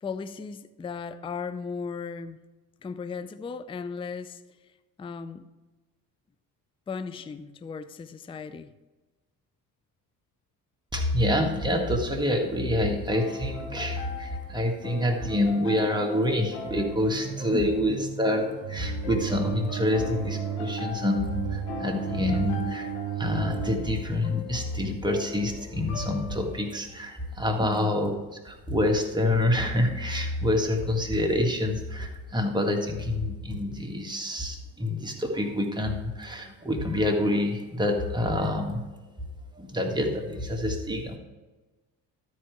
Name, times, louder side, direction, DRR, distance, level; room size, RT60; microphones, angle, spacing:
voice 1, 0.0-2.4 2.8-4.4 5.0-5.4 6.9-8.7 17.5-17.7 27.6-27.9, left 5 dB, 10° left, 13 dB, 0.4 m, -36 dB
voice 2, 10.9-22.9 23.2-28.2 28.4-38.8 39.5-41.2, left 1 dB, 10° right, 1 dB, 1.8 m, -27 dB
sound 1, 13.1-26.8, left 6 dB, 75° left, 1.2 m, -41 dB
sound 2, 17.1-23.8, right 10 dB, 45° right, 0.7 m, -34 dB
12.5 x 4.8 x 4.6 m, 1.2 s
hypercardioid pair, 50°, 48 cm